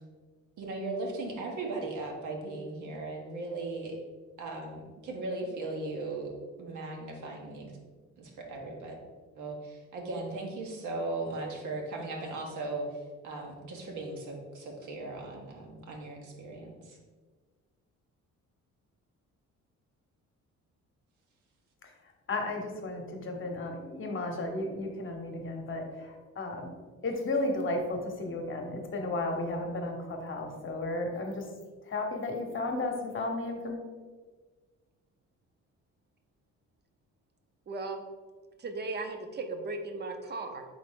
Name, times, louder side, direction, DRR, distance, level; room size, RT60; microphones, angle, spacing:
voice 1, 0.6-4.0 4.4-6.3 6.6-7.7 8.2-9.0 9.3-17.0, right 2 dB, 80° right, 0 dB, 1.0 m, -37 dB
voice 2, 21.8-26.7 27.0-31.5 31.8-33.8, left 2 dB, 40° left, 3 dB, 0.9 m, -34 dB
voice 3, 37.7-38.0 38.6-40.6, right 3 dB, 35° right, 6 dB, 0.6 m, -36 dB
3.9 x 3.7 x 3.6 m, 1.4 s
cardioid pair, 90°, 30 cm